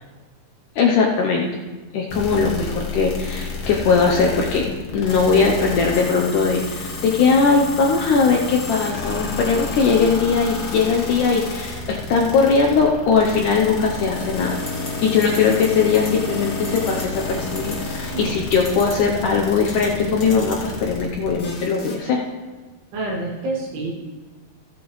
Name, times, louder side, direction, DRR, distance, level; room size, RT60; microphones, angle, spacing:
voice 1, 0.8-1.5 1.9-4.7 4.9-14.6 15.0-22.2, left 5 dB, 75° left, -1 dB, 2.0 m, -19 dB
sound 1, 2.1-22.0, left 3 dB, 50° left, 1.8 m, -30 dB
sound 2, 14.7-14.9 15.2-15.7 15.9-16.1 16.6-17.0 17.6-17.7 18.5-18.9 19.6-19.9 20.2-20.6, left 2 dB, 30° left, 1.3 m, -34 dB
voice 2, 22.9-23.9, right 2 dB, 80° right, -2 dB, 3.9 m, -27 dB
15.0 x 9.6 x 3.1 m, 1.3 s
omnidirectional pair, 4.5 m